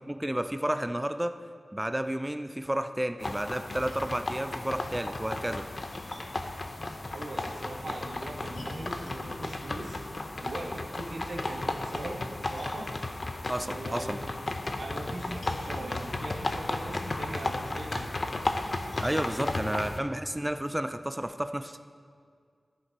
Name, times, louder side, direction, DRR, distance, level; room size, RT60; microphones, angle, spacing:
voice 1, 0.1-1.3 1.7-5.6 13.5-14.2 19.0-21.8, right 1 dB, 10° right, 9 dB, 0.3 m, -31 dB
sound 1, 3.2-20.0, left 2 dB, 45° left, 0.6 m, -34 dB
Splash splatter, 3.3-20.5, left 1 dB, 80° left, 2.1 m, -53 dB
voice 2, 7.1-10.0 10.4-12.9 13.6-14.4 14.7-18.3 19.2-19.7, right 1 dB, 85° right, 1 dB, 1.2 m, -40 dB
13.5 x 5.8 x 4.7 m, 2.1 s
wide cardioid pair, 100°, 0 cm